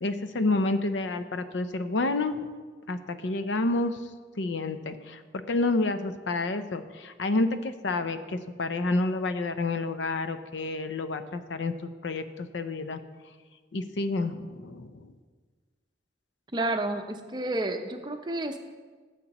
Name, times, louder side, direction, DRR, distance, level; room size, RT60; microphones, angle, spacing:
voice 1, 0.0-2.4 2.9-4.0 4.4-11.7 12.0-13.0 13.7-15.0, left 2 dB, 85° left, 10 dB, 0.6 m, -29 dB
voice 2, 16.5-18.6, right 2 dB, 25° right, 6 dB, 0.6 m, -30 dB
14.5 x 7.3 x 3.0 m, 1.5 s
head